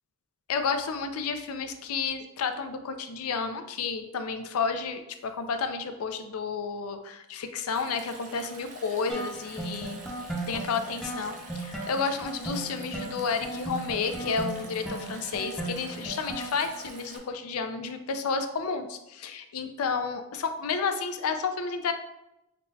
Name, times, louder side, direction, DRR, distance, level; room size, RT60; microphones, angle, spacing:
voice 1, 0.5-10.0 10.5-21.9, left 5 dB, 80° left, 8 dB, 0.4 m, -31 dB
Stream, 7.7-17.2, right 3 dB, 35° right, 0.6 m, -47 dB
sound 1, 9.1-16.7, right 2 dB, ahead, 0.7 m, -37 dB
4.2 x 2.2 x 4.0 m, 0.88 s
head